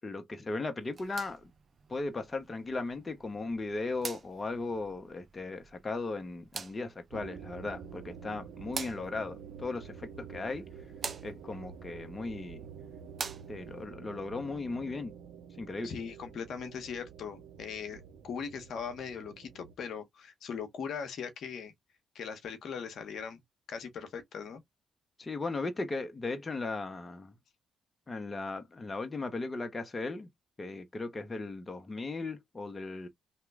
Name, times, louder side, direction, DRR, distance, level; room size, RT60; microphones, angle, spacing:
voice 1, 0.0-1.5 1.9-10.6 11.2-12.7 13.5-15.1 15.6-15.9 25.2-27.3 28.1-30.3 30.6-33.1, left 3 dB, 30° left, 0.7 m, -37 dB
sound 1, 0.8-13.9, right 5 dB, 45° right, 0.6 m, -47 dB
sound 2, 7.1-19.7, right 7 dB, 85° right, 0.5 m, -48 dB
voice 2, 15.8-21.7 22.1-23.4 23.7-24.6, left 6 dB, 70° left, 0.8 m, -40 dB
2.9 x 2.2 x 3.4 m
supercardioid pair, 60°, 0 cm